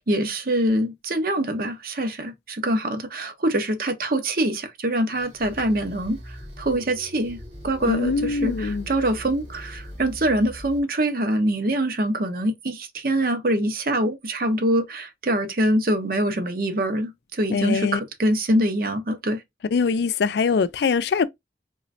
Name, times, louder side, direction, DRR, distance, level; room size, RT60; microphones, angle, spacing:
voice 1, 0.0-19.4, right 1 dB, 55° right, 0.8 m, -24 dB
sound 1, 5.1-10.8, equal, 70° right, 2.0 m, -40 dB
voice 2, 7.9-8.9 17.5-18.0 19.7-21.3, left 5 dB, 70° left, 0.4 m, -22 dB
3.8 x 3.1 x 2.6 m
head